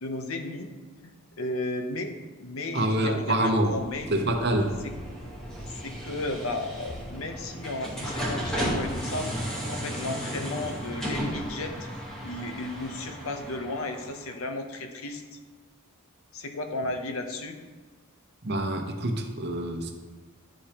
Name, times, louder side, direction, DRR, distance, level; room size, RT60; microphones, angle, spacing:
voice 1, 0.0-0.7 1.0-4.1 5.6-9.3 9.7-11.8 12.2-15.2 16.3-17.6, left 2 dB, 70° left, 6 dB, 0.7 m, -34 dB
voice 2, 2.7-3.7 4.1-4.8 18.4-19.9, right 1 dB, 50° right, 4 dB, 0.8 m, -26 dB
sound 1, 3.6-14.3, equal, 5° left, 1.3 m, -35 dB
11.0 x 5.0 x 2.9 m, 1.4 s
head